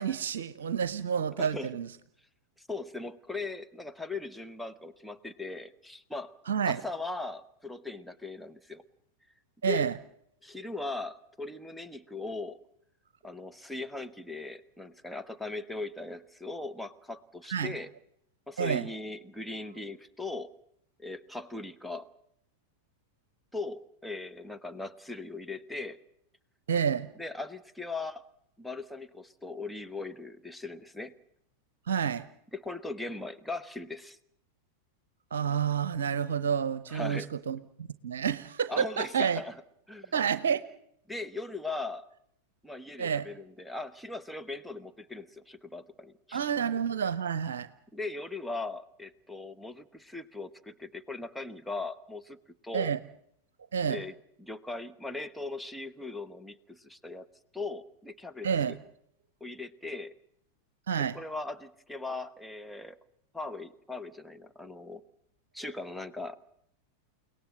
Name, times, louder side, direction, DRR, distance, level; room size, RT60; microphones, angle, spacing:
voice 1, 0.0-1.9 6.5-6.8 9.6-10.0 17.5-17.7 18.6-18.9 26.7-27.1 31.9-32.2 35.3-39.4 40.1-40.6 43.0-43.3 46.3-47.7 52.7-53.0 53.7-54.0 58.4-58.7 60.9-61.2, right 7 dB, 60° right, 14 dB, 0.8 m, -29 dB
voice 2, 1.4-1.7 2.6-6.3 6.7-8.8 9.7-9.9 10.4-12.6 13.2-17.9 18.5-20.5 21.0-22.1 23.5-26.0 27.2-28.3 28.6-31.1 32.5-34.2 36.9-37.3 38.7-39.5 39.9-40.1 41.1-42.1 42.6-46.5 47.9-52.4 52.6-52.9 53.9-57.3 57.5-58.8 59.4-60.1 61.1-63.0 63.3-65.0 65.5-66.4, left 3 dB, 5° left, 9 dB, 1.1 m, -39 dB
30.0 x 18.0 x 7.7 m, 0.75 s
figure-of-eight pair, 90°, 0 cm